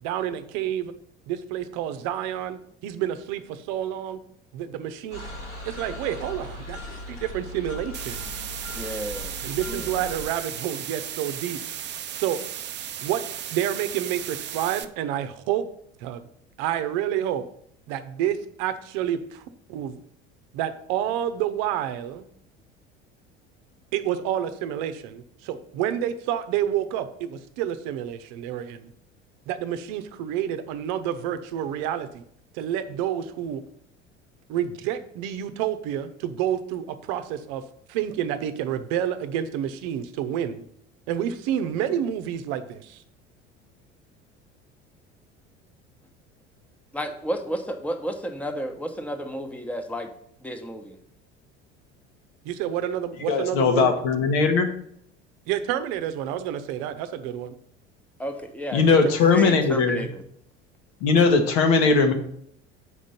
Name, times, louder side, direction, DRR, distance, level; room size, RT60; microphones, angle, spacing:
voice 1, 0.0-0.9 1.3-4.2 4.5-5.2 5.6-6.8 7.2-8.4 9.4-11.6 12.1-12.4 13.0-13.2 13.5-15.6 16.0-16.3 16.6-17.4 17.9-19.4 19.7-20.0 20.5-22.3 23.9-28.9 29.5-32.2 32.5-33.6 34.5-37.6 37.9-40.6 41.1-43.0 52.4-53.9 55.5-57.5 58.9-59.0, right 10 dB, 55° right, 11 dB, 0.8 m, -29 dB
sound 1, 5.1-10.3, left 1 dB, 85° left, 2.1 m, -38 dB
sound 2, 7.9-14.8, right 10 dB, 30° right, 0.5 m, -35 dB
voice 2, 8.7-10.0 41.7-41.9 46.9-50.1 50.4-51.0 58.2-59.0 59.3-60.2, equal, 5° left, 5 dB, 1.0 m, -32 dB
voice 3, 53.3-54.7 58.7-60.1 61.0-62.1, left 4 dB, 60° left, 5 dB, 1.2 m, -19 dB
6.7 x 5.1 x 5.6 m, 0.68 s
figure-of-eight pair, 65°, 35 cm